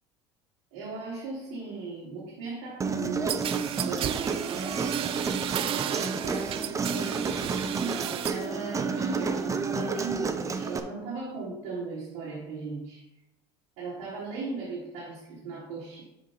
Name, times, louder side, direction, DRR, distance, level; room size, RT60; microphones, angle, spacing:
voice 1, 0.7-5.3 5.7-13.0 13.8-16.0, right 4 dB, 80° right, -7 dB, 2.9 m, -37 dB
Human voice, 2.8-10.8, right 4 dB, 25° right, 0.8 m, -30 dB
sound 1, 3.3-8.5 8.8-9.5, right 11 dB, 40° right, 0.4 m, -34 dB
7.9 x 5.1 x 4.1 m, 0.88 s
supercardioid pair, 95°, 14 cm